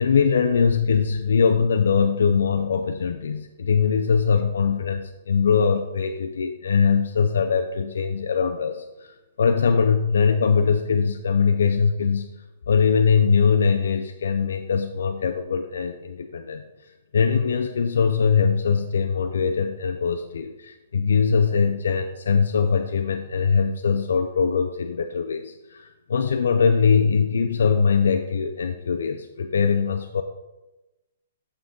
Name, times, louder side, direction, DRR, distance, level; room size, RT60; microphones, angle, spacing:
voice 1, 0.0-12.3 12.7-30.2, left 6 dB, 85° left, 5 dB, 0.4 m, -22 dB
6.6 x 5.9 x 3.7 m, 1.0 s
hypercardioid pair, 170°, 0 cm